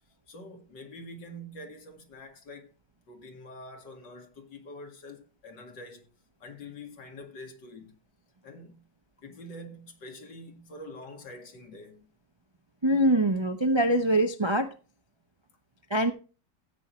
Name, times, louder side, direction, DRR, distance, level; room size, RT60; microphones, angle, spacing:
voice 1, 0.3-2.7 3.1-6.1 6.4-8.0 8.4-8.9 9.2-12.1, left 1 dB, 75° left, 2.7 m, -45 dB
voice 2, 12.8-14.7 15.9-16.1, right 1 dB, 45° right, 0.3 m, -23 dB
14.5 x 8.8 x 3.1 m
omnidirectional pair, 1.9 m